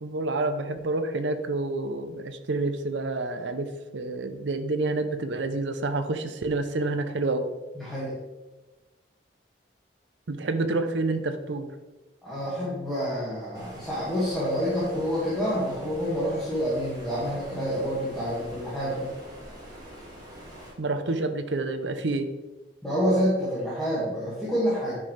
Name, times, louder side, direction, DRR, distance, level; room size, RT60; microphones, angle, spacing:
voice 1, 0.0-7.5 10.3-11.7 20.8-22.3, right 2 dB, 80° right, 9 dB, 0.7 m, -28 dB
voice 2, 7.8-8.1 12.2-19.1 22.8-25.0, equal, ahead, -10 dB, 2.0 m, -28 dB
Stream, 13.5-20.7, equal, 20° right, 2.2 m, -45 dB
9.6 x 5.9 x 3.3 m, 1.2 s
head